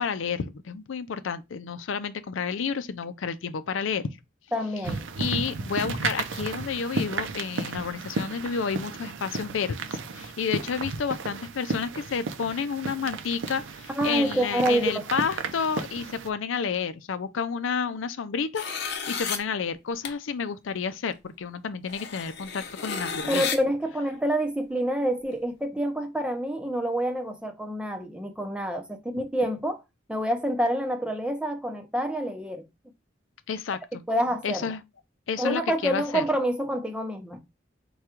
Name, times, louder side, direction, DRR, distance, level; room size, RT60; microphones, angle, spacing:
voice 1, 0.0-4.1 5.2-23.4 33.5-34.0 34.4-34.8 35.3-36.2, left 6 dB, 90° left, 0.5 m, -30 dB
voice 2, 4.5-5.0 14.0-15.1 23.3-29.8 30.1-32.7 34.1-34.7 35.4-37.4, right 1 dB, 5° right, 0.7 m, -27 dB
sound 1, 4.8-16.3, right 4 dB, 80° right, 0.6 m, -34 dB
sound 2, 18.5-19.4 20.0-20.1 21.1-21.2 21.9-23.6, left 6 dB, 60° left, 0.8 m, -32 dB
4.8 x 2.3 x 4.4 m
head